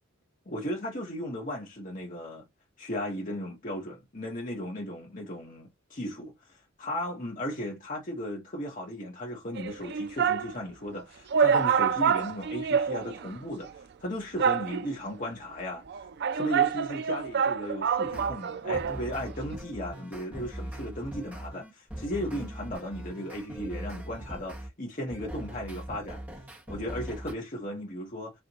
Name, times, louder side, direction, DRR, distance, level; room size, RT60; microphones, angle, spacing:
voice 1, 0.4-2.5 2.8-13.7 14.0-15.8 16.3-26.2 26.7-28.3, equal, 40° left, 1.6 m, -36 dB
sound 1, 9.6-10.5 11.0-11.1 11.3-13.4 13.6-13.7 14.4-15.1 15.9-19.0 19.3-19.4, right 7 dB, 55° right, 0.4 m, -27 dB
sound 2, 18.0-18.3 18.7-24.7 25.1-27.3, right 1 dB, 10° right, 1.7 m, -41 dB
4.8 x 3.4 x 3.1 m
head